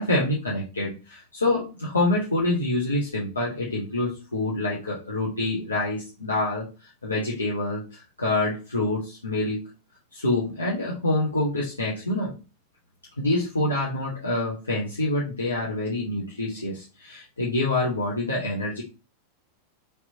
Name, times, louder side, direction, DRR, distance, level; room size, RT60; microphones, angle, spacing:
voice 1, 0.0-9.6 10.1-12.3 13.2-18.8, left 2 dB, 80° left, -4 dB, 0.7 m, -26 dB
3.3 x 2.9 x 2.7 m, 0.32 s
figure-of-eight pair, 90°, 0 cm